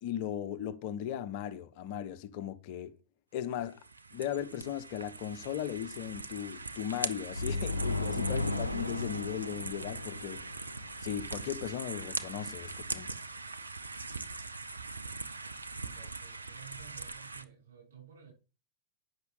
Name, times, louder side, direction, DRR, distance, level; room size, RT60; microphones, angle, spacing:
voice 1, 0.0-3.0 3.3-3.8 4.1-10.4 11.0-13.1, left 10 dB, 50° left, 0.9 m, -37 dB
sound 1, 3.5-17.4, right 3 dB, 80° right, 0.7 m, -41 dB
sound 2, 7.3-11.1, left 2 dB, 85° left, 0.6 m, -35 dB
voice 2, 15.8-18.3, right 9 dB, 60° right, 6.0 m, -54 dB
9.7 x 6.2 x 5.6 m
figure-of-eight pair, 90°, 0 cm